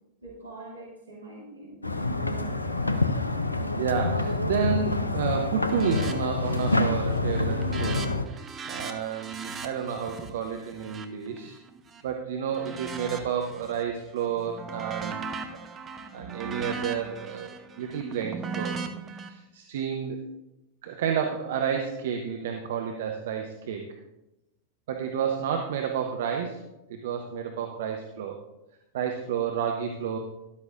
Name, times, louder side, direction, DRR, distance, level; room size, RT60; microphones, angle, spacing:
voice 1, 0.2-2.6, right 2 dB, 80° right, -5 dB, 2.4 m, -44 dB
sound 1, 1.8-8.2, left 2 dB, 80° left, 0.6 m, -27 dB
voice 2, 3.8-8.4 8.6-11.6 12.0-15.4 16.1-18.8 19.2-20.2 20.8-23.8 24.9-28.4 28.9-30.2, right 7 dB, 55° right, 3 dB, 0.9 m, -30 dB
sound 2, 5.7-6.1 6.4-6.9 7.2-12.0 12.5-13.8 14.2-19.3, right 5 dB, 20° right, 0.9 m, -38 dB
12.5 x 11.5 x 2.6 m, 0.93 s
figure-of-eight pair, 90°, 0 cm